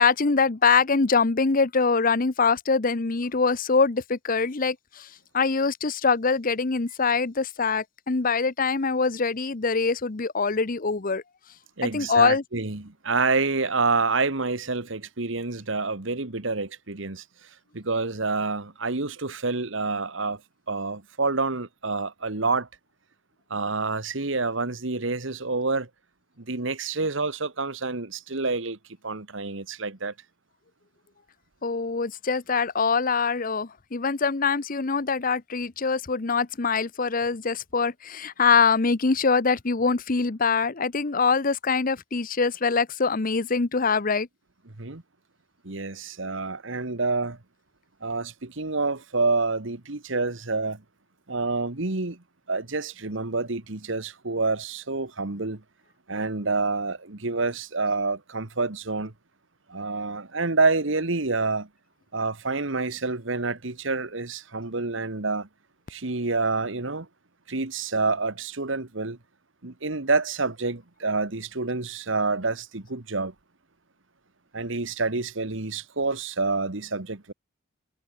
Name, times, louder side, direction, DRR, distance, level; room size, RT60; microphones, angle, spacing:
voice 1, 0.0-5.1 5.3-11.2 11.8-12.4 31.6-44.3, left 5 dB, 40° left, 0.8 m, -24 dB
voice 2, 11.8-17.2 17.7-20.4 20.7-22.7 23.5-25.9 26.4-28.8 29.0-30.1 44.8-45.0 45.6-47.4 48.0-50.8 51.3-55.6 56.1-59.1 59.7-61.7 62.1-65.5 65.9-67.1 67.5-69.2 69.6-73.3 74.5-77.3, right 3 dB, 65° right, 1.6 m, -28 dB
head